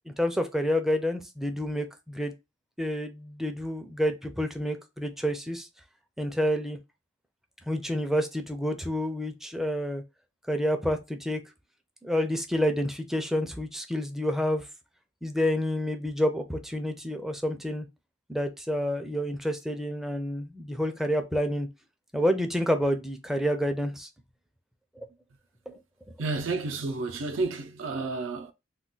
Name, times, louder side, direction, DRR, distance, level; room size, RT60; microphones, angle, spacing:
voice 1, 0.1-2.3 2.8-5.7 6.2-6.8 7.7-10.0 10.5-11.4 12.0-14.7 15.2-17.9 18.3-21.7 22.1-24.1 25.0-25.1 25.7-25.8, equal, ahead, 0.4 m, -29 dB
voice 2, 26.2-28.5, right 3 dB, 80° right, 0.5 m, -31 dB
2.3 x 2.2 x 3.7 m
head